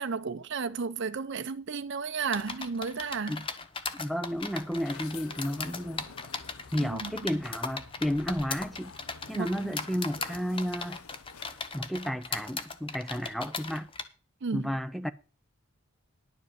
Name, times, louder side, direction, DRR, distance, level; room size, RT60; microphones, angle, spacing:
voice 1, 0.0-3.4 6.8-7.1 9.3-9.7 14.4-14.7, right 5 dB, 55° right, 0.6 m, -33 dB
sound 1, 2.3-14.0, left 4 dB, 25° left, 0.8 m, -38 dB
voice 2, 3.9-6.0 6.7-8.9 9.3-11.0 11.7-13.9 14.5-15.1, equal, ahead, 0.5 m, -32 dB
sound 2, 4.2-12.0, left 5 dB, 85° left, 0.8 m, -50 dB
11.0 x 5.1 x 7.9 m
head